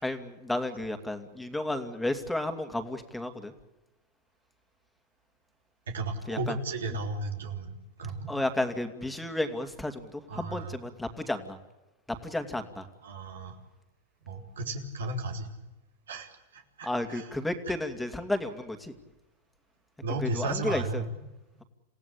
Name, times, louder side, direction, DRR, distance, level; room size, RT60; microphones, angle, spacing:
voice 1, 0.0-3.5 6.3-6.6 8.3-11.6 12.1-12.9 16.8-18.9 20.2-21.0, left 1 dB, 5° left, 7 dB, 2.4 m, -32 dB
voice 2, 5.9-8.3 10.3-10.7 13.0-13.6 14.3-15.5 16.1-17.3 17.7-17.8 20.0-21.1, right 2 dB, 85° right, 2 dB, 3.6 m, -34 dB
28.5 x 16.0 x 8.6 m, 1.0 s
hypercardioid pair, 110°, 0 cm